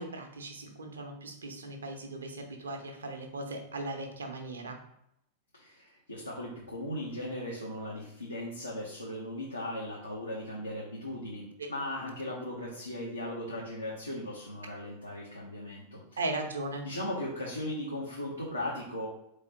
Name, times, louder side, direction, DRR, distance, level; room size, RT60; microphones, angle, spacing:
voice 1, 0.0-4.8 16.2-16.9, right 2 dB, 70° right, 3 dB, 0.7 m, -38 dB
voice 2, 5.5-16.0 16.8-19.1, left 1 dB, 85° left, -5 dB, 0.8 m, -37 dB
4.1 x 3.1 x 2.8 m, 0.79 s
figure-of-eight pair, 90°, 0 cm